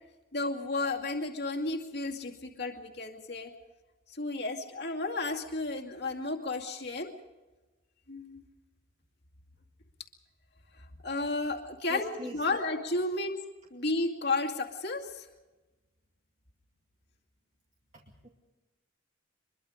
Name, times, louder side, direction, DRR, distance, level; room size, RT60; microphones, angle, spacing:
voice 1, 0.3-3.5 4.1-7.1 8.1-8.4 11.0-13.4 13.7-15.3, left 2 dB, 55° left, 3 dB, 2.3 m, -32 dB
voice 2, 11.9-12.5 17.9-18.3, left 1 dB, 35° right, 1 dB, 2.3 m, -43 dB
24.5 x 22.5 x 5.1 m, 1.2 s
head